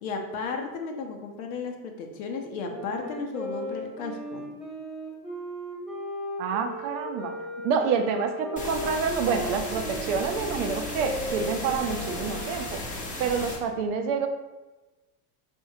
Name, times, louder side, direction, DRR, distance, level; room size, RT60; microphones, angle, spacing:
voice 1, 0.0-4.5, left 4 dB, 60° left, 4 dB, 0.8 m, -34 dB
Wind instrument woodwind instrument, 2.6-12.7, equal, ahead, 1.4 m, -37 dB
voice 2, 6.4-7.3 7.6-12.8 13.2-14.3, right 5 dB, 55° right, 5 dB, 0.7 m, -28 dB
sound 1, 8.6-13.6, left 1 dB, 15° left, 0.9 m, -35 dB
4.4 x 3.5 x 2.7 m, 1.1 s
hypercardioid pair, 85°, 47 cm